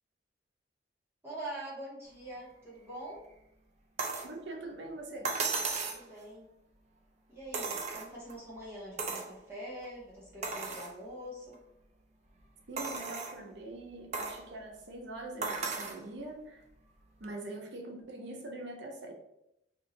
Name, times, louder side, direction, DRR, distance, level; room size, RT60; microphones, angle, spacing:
voice 1, 1.2-3.2 5.8-6.5 7.3-11.5, right 1 dB, 15° right, -7 dB, 0.9 m, -44 dB
sound 1, 4.0-4.3 5.3-6.0 7.5-8.3 9.0-9.3 9.8-9.9 10.4-10.9 11.5-11.6 12.8-13.4 14.1-14.4 15.4-16.0 17.2-17.3, right 4 dB, 35° right, 0.5 m, -35 dB
voice 2, 4.2-5.3 12.7-16.7 17.2-19.1, right 2 dB, 70° right, 1 dB, 0.8 m, -43 dB
2.9 x 2.7 x 4.0 m, 0.82 s
head